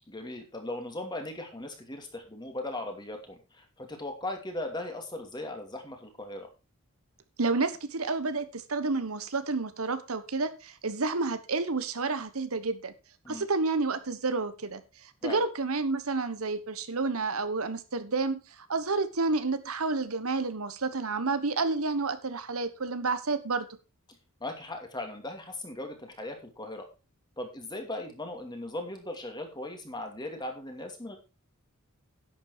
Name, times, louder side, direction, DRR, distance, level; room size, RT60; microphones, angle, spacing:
voice 1, 0.1-6.5 13.2-13.5 15.2-15.4 24.4-26.9 27.4-31.2, left 1 dB, 20° left, 2.6 m, -38 dB
voice 2, 7.4-12.9 13.3-23.7, right 3 dB, 80° right, 1.2 m, -30 dB
11.0 x 8.2 x 4.5 m
head